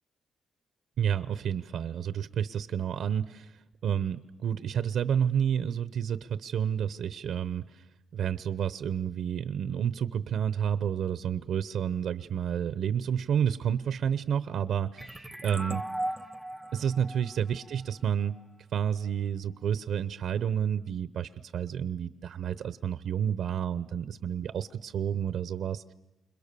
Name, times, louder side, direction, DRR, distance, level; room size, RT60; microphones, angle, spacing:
voice 1, 1.0-3.5 3.8-7.8 8.1-15.8 16.7-18.4 18.7-25.8, right 8 dB, 70° right, 13 dB, 0.8 m, -30 dB
sound 1, 15.0-18.4, right 1 dB, 5° right, 0.9 m, -38 dB
29.0 x 27.5 x 6.9 m, 1.1 s
cardioid pair, 105°, 0 cm